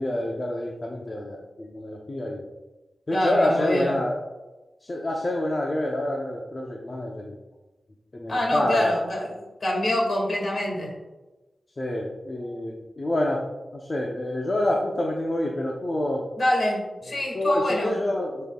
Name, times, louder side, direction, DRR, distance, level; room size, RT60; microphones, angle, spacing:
voice 1, 0.0-2.5 3.1-4.2 4.8-7.4 8.1-8.9 11.8-13.5 13.7-16.2 17.3-18.4, left 1 dB, 30° left, -2 dB, 0.7 m, -27 dB
voice 2, 3.1-4.0 8.3-10.9 16.4-17.9, left 1 dB, 50° left, -2 dB, 2.1 m, -25 dB
11.0 x 5.6 x 2.4 m, 1.1 s
wide cardioid pair, 160°, 0 cm